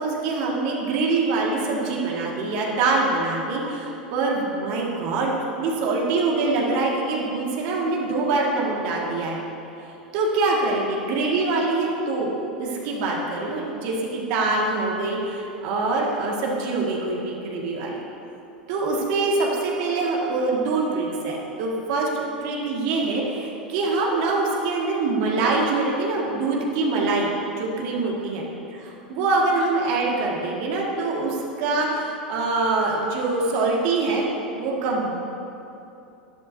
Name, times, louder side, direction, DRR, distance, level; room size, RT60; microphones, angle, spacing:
voice 1, 0.0-5.3 5.6-9.4 10.1-18.0 18.7-27.3 27.6-28.5 28.9-34.3 34.6-35.1, right 3 dB, 55° right, -2 dB, 1.8 m, -24 dB
12.0 x 11.5 x 2.7 m, 2.8 s
figure-of-eight pair, 90°, 5 cm